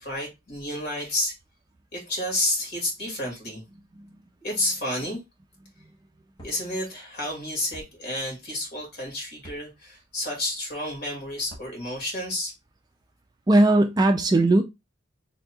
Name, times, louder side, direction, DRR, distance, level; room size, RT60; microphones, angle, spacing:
voice 1, 0.0-1.3 1.9-3.6 4.4-5.2 6.4-12.5, left 1 dB, 55° left, 2.1 m, -30 dB
sound 1, 6.4-6.6 7.7-7.9 9.4-9.6 11.4-11.7, right 1 dB, 20° left, 1.0 m, -45 dB
voice 2, 13.5-14.6, right 2 dB, 20° right, 0.3 m, -18 dB
4.3 x 3.4 x 2.3 m
head